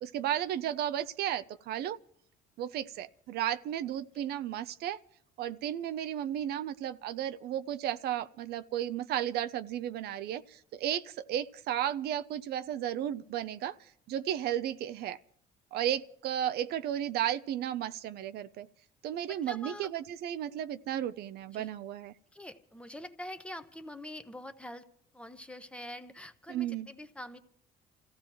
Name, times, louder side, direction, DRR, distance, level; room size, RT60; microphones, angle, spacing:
voice 1, 0.0-2.0 2.6-5.0 5.4-15.2 15.7-18.7 19.0-22.1 26.5-26.9, right 11 dB, 70° right, 0.6 m, -34 dB
voice 2, 19.3-19.9 21.5-21.7 22.3-24.9 25.1-27.4, left 1 dB, 5° left, 1.0 m, -45 dB
28.5 x 15.5 x 3.0 m
cardioid pair, 110°, 17 cm